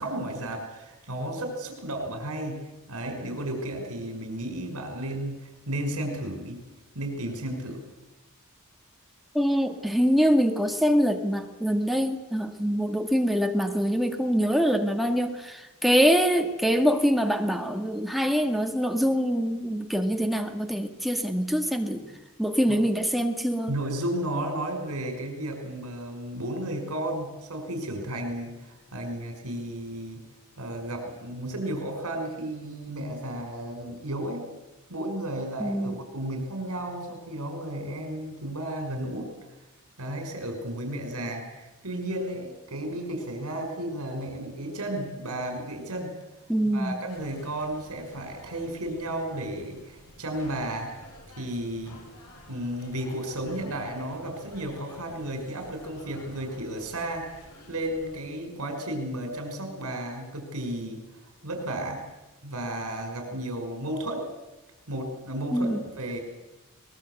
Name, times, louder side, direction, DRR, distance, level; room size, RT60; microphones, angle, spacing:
voice 1, 0.0-6.6 6.9-7.8 22.7-22.8 23.7-30.3 30.6-34.5 34.9-39.3 40.0-46.1 46.7-52.1 52.5-62.0 62.4-64.3 64.9-66.2, right 1 dB, 80° right, 5 dB, 5.6 m, -33 dB
voice 2, 9.3-22.0 22.4-23.7 35.6-36.0 46.5-47.0 65.5-65.8, equal, ahead, 4 dB, 1.8 m, -24 dB
sound 1, 47.1-58.2, left 1 dB, 85° left, 7.9 m, -50 dB
22.5 x 21.0 x 8.1 m, 1.0 s
head